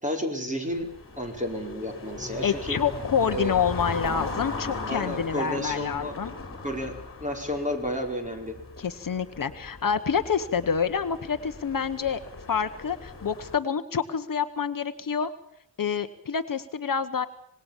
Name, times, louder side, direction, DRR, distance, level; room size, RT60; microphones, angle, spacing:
voice 1, 0.0-0.9 1.2-2.8 3.3-3.5 4.9-6.1 6.6-8.6, equal, 15° right, 4 dB, 4.8 m, -31 dB
sound 1, 0.7-13.6, left 3 dB, 30° left, 4.3 m, -38 dB
voice 2, 2.4-6.3 8.8-12.2 12.5-15.3 15.8-17.3, left 7 dB, 50° left, 9 dB, 1.1 m, -27 dB
26.5 x 20.0 x 7.3 m, 0.69 s
wide cardioid pair, 140°, 44 cm